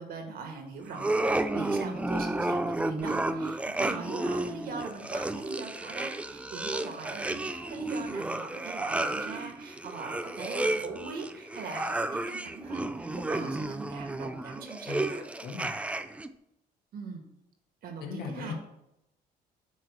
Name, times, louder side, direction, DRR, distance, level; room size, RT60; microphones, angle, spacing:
voice 1, 0.0-15.2 16.9-17.2 17.8-18.5, right 4 dB, 60° right, 4 dB, 1.4 m, -41 dB
sound 1, 0.9-16.3, right 2 dB, 5° right, 0.3 m, -32 dB
voice 2, 15.4-15.7 18.0-18.5, left 5 dB, 70° left, 1 dB, 1.7 m, -37 dB
7.9 x 3.1 x 5.9 m, 0.83 s
cardioid pair, 110°, 17 cm